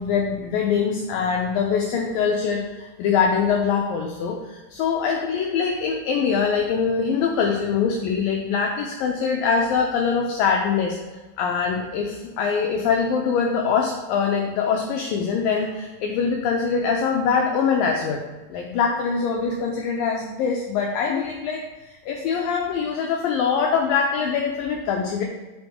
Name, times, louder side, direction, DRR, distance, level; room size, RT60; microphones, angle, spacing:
voice 1, 0.0-11.0 11.4-18.2 18.5-25.2, left 6 dB, 80° left, 1 dB, 2.1 m, -23 dB
10.5 x 4.1 x 3.5 m, 1.2 s
omnidirectional pair, 4.7 m